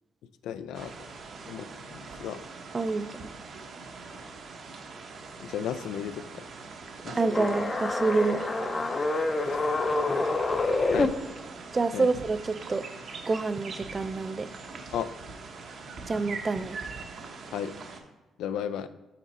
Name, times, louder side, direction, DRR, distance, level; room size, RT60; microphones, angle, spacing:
voice 1, 0.4-0.9 1.5-2.4 5.4-6.5 7.0-7.5 9.5-9.6 10.9-11.1 11.9-12.1 14.9-15.1 17.5-17.7 18.4-18.9, left 9 dB, 85° left, 12 dB, 0.3 m, -34 dB
sound 1, 0.7-18.0, right 4 dB, 55° right, 0.7 m, -43 dB
voice 2, 2.7-3.1 7.2-8.5 11.7-12.9 13.3-14.5 16.1-16.8, right 3 dB, 30° right, 13 dB, 0.4 m, -27 dB
sound 2, 7.2-11.1, left 2 dB, 25° left, 0.5 m, -27 dB
6.0 x 4.0 x 4.1 m, 1.2 s
cardioid pair, 90°, 0 cm